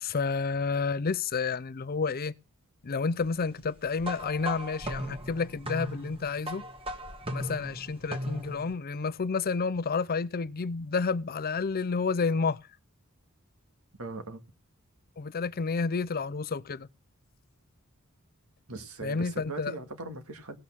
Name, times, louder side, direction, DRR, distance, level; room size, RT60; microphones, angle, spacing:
voice 1, 0.0-2.3 2.8-6.6 7.3-12.6 15.2-16.9 19.0-19.7, left 4 dB, 45° left, 0.5 m, -30 dB
sound 1, 4.0-8.7, equal, 25° right, 1.8 m, -37 dB
voice 2, 14.0-14.4 18.7-20.6, right 3 dB, 75° right, 2.0 m, -40 dB
17.5 x 6.5 x 5.9 m
head